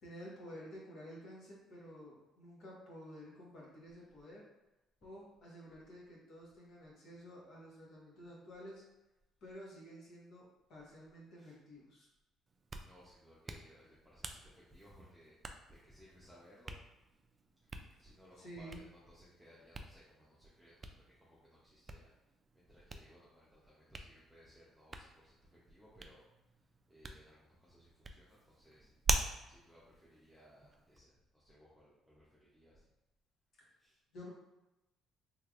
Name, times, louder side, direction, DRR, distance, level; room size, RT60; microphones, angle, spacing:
voice 1, 0.0-4.4 5.0-8.8 9.4-12.1 18.4-18.8 33.6-33.7 34.1-34.3, equal, 65° left, -4 dB, 1.3 m, -52 dB
Hands, 12.5-31.0, right 2 dB, 30° right, 0.3 m, -45 dB
voice 2, 12.8-15.3 15.7-16.8 17.6-22.1 22.5-29.0 29.5-32.9 33.8-34.0, equal, 5° right, -7 dB, 0.7 m, -62 dB
3.3 x 3.1 x 2.5 m, 0.97 s
cardioid pair, 100°, 0 cm